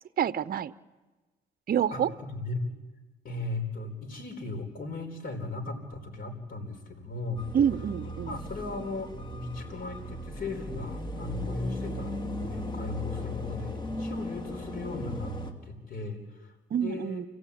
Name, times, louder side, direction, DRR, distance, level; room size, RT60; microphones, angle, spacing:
voice 1, 0.2-0.7 1.7-2.1 7.5-8.4 16.7-17.3, right 8 dB, 50° right, 16 dB, 0.7 m, -27 dB
voice 2, 1.9-2.6 3.2-7.5 8.0-15.4 15.7-17.3, left 3 dB, 50° left, 5 dB, 4.5 m, -37 dB
sound 1, 7.4-15.5, left 1 dB, 25° left, 2.6 m, -37 dB
29.0 x 15.5 x 8.5 m, 1.3 s
cardioid pair, 90°, 20 cm